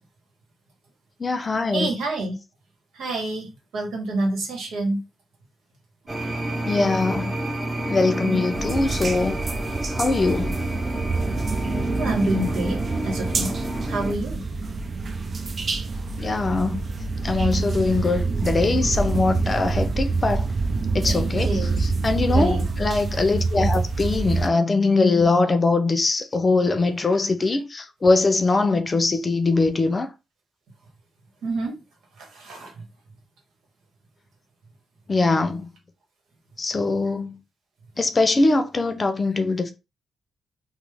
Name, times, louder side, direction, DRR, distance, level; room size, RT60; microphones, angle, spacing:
voice 1, 1.2-2.0 6.7-7.4 7.9-9.4 10.0-10.6 16.2-16.8 17.2-20.5 20.9-30.1 35.1-35.7 36.6-37.4 38.0-39.7, left 3 dB, 40° left, 0.5 m, -22 dB
voice 2, 1.7-2.4 2.9-3.5 3.7-5.0 8.2-8.5 12.0-12.8 13.0-13.6 13.9-14.4 21.4-21.8 22.3-22.6 31.4-31.8 32.2-32.7, right 2 dB, 85° right, 1.1 m, -27 dB
sound 1, 6.1-14.1, right 1 dB, 15° right, 0.7 m, -30 dB
sound 2, 8.5-24.5, right 3 dB, 50° right, 0.5 m, -26 dB
3.0 x 2.1 x 3.4 m
supercardioid pair, 55°, 0 cm